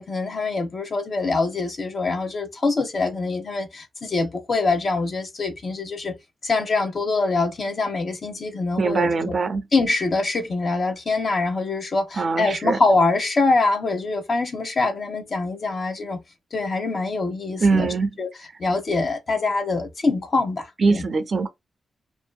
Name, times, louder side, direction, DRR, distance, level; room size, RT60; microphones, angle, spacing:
voice 1, 0.0-6.1 6.4-9.3 9.7-16.2 16.5-17.9 18.2-21.0, left 3 dB, 45° left, 0.7 m, -24 dB
voice 2, 8.8-9.6 12.2-12.8 17.6-18.1 20.8-21.5, right 4 dB, 45° right, 0.3 m, -22 dB
2.6 x 2.4 x 2.2 m
wide cardioid pair, 120°, 0 cm